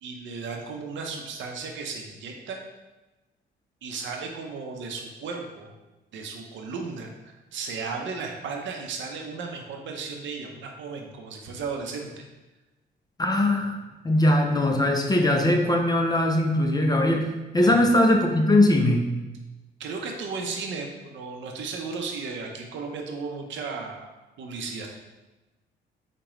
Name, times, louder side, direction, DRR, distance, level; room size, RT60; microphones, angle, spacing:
voice 1, 0.0-2.6 3.8-5.7 6.1-12.1 17.6-17.9 19.8-24.1 24.4-24.9, right 4 dB, 70° right, 2 dB, 0.6 m, -35 dB
voice 2, 13.2-13.8 14.0-19.1, left 1 dB, 20° left, 3 dB, 0.4 m, -21 dB
4.9 x 2.2 x 3.0 m, 1.1 s
cardioid pair, 90°, 20 cm